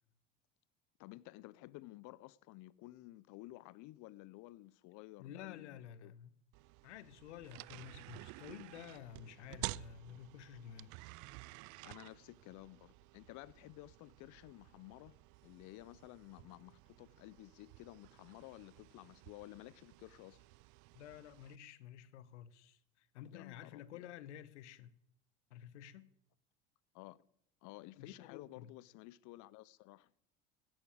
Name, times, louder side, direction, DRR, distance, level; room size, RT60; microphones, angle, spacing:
voice 1, 1.0-6.1 11.8-15.2 15.4-20.5 23.3-24.0 26.9-27.3 27.6-30.1, left 18 dB, 60° left, 0.8 m, -54 dB
voice 2, 5.2-6.3 6.8-11.0 20.9-24.9 25.5-26.1 28.0-28.7, left 10 dB, 85° left, 1.1 m, -52 dB
sound 1, 6.5-21.6, right 21 dB, 60° right, 0.6 m, -52 dB
15.5 x 11.0 x 8.6 m
hypercardioid pair, 80°, 34 cm